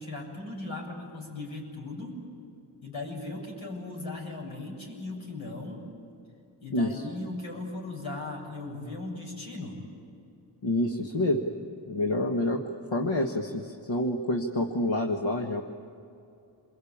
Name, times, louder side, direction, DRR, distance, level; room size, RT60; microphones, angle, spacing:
voice 1, 0.0-2.2 2.8-5.8 6.6-9.8, left 2 dB, 85° left, -2 dB, 7.7 m, -38 dB
voice 2, 6.7-7.0 10.6-11.4 11.9-12.6 12.9-15.6, left 1 dB, 70° left, 2 dB, 1.7 m, -27 dB
28.0 x 23.5 x 8.8 m, 2.6 s
wide cardioid pair, 95°, 47 cm